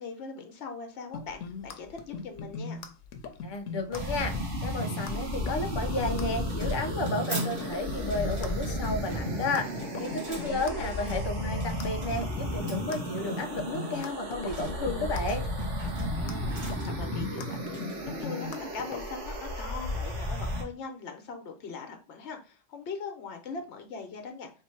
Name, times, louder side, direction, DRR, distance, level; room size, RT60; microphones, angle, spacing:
voice 1, 0.0-2.8 10.4-10.9 16.1-24.5, left 5 dB, 65° left, 5 dB, 1.1 m, -41 dB
sound 1, 1.1-19.0, left 4 dB, 85° left, 1.0 m, -39 dB
voice 2, 3.4-4.3 4.6-15.4, left 2 dB, 45° left, 5 dB, 0.3 m, -32 dB
sound 2, 3.9-20.6, equal, 70° right, 1.4 m, -34 dB
sound 3, 6.3-19.4, right 1 dB, 45° right, 1.7 m, -44 dB
3.4 x 2.8 x 4.4 m, 0.36 s
omnidirectional pair, 1.3 m